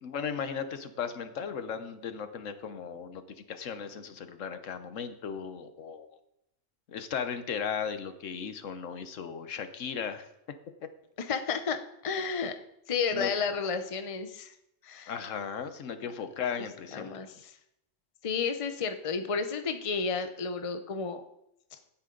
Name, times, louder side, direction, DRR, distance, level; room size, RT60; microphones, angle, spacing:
voice 1, 0.0-3.2 3.5-6.1 6.9-10.3 13.1-13.3 15.1-17.1, left 7 dB, 80° left, 10 dB, 1.3 m, -36 dB
voice 2, 11.2-12.6 12.9-14.5 14.8-15.1 16.0-16.1 16.9-17.5 18.2-21.2, left 5 dB, 30° left, 8 dB, 0.8 m, -32 dB
16.0 x 8.7 x 3.9 m, 0.82 s
omnidirectional pair, 1.3 m